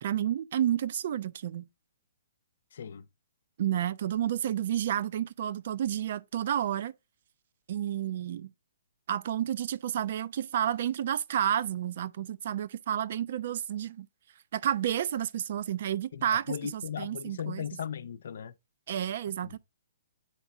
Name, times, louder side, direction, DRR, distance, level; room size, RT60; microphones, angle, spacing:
voice 1, 0.0-1.7 3.6-6.9 7.7-8.5 9.1-14.1 14.5-17.6 18.9-19.6, right 10 dB, 50° right, 0.6 m, -30 dB
voice 2, 2.7-3.1 16.1-18.5 19.4-19.6, left 8 dB, 65° left, 0.6 m, -37 dB
8.3 x 4.0 x 3.6 m
hypercardioid pair, 155°, 0 cm